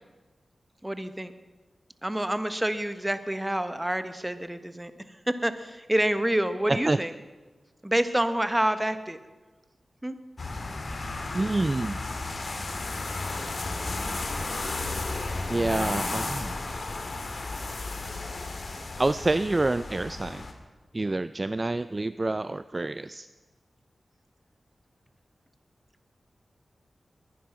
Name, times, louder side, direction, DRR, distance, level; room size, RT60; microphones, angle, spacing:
voice 1, 0.8-1.3 2.0-4.9 5.3-7.1 7.8-9.2 10.0-10.1, right 1 dB, 15° right, 10 dB, 1.3 m, -27 dB
sound 1, 10.4-20.5, left 3 dB, 60° left, 2.1 m, -33 dB
voice 2, 11.3-12.0 12.6-12.7 13.9-14.0 15.5-16.5 19.0-20.5 20.9-23.3, right 2 dB, 35° right, 14 dB, 0.4 m, -27 dB
21.5 x 10.0 x 5.9 m, 1.3 s
cardioid pair, 40°, 0 cm